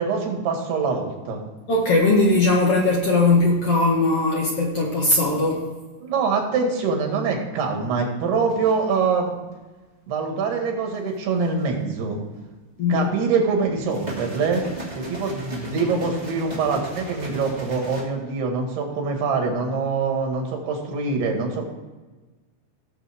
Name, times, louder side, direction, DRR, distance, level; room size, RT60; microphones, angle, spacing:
voice 1, 0.0-1.4 6.0-9.4 10.1-12.2 12.9-14.6 15.0-21.7, right 4 dB, 90° right, 2 dB, 4.0 m, -24 dB
voice 2, 1.7-5.6 12.8-13.1, left 2 dB, 50° left, -2 dB, 1.9 m, -19 dB
sound 1, 8.5-9.1 11.1-11.8 13.7-18.0, equal, 15° right, 1.7 m, -37 dB
17.5 x 7.0 x 3.6 m, 1.2 s
omnidirectional pair, 4.5 m